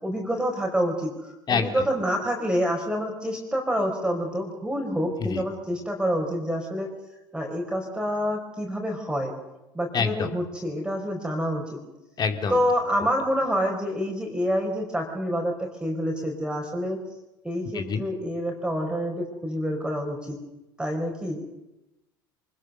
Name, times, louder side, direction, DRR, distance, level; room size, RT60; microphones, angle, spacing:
voice 1, 0.0-6.9 7.3-9.3 9.7-11.8 12.5-17.0 17.4-20.4 20.8-21.4, equal, 5° right, 1 dB, 4.4 m, -27 dB
voice 2, 9.9-10.3 12.2-12.6 17.7-18.0, left 6 dB, 35° left, 6 dB, 2.6 m, -26 dB
25.0 x 19.5 x 6.8 m, 0.97 s
hypercardioid pair, 70°, 12 cm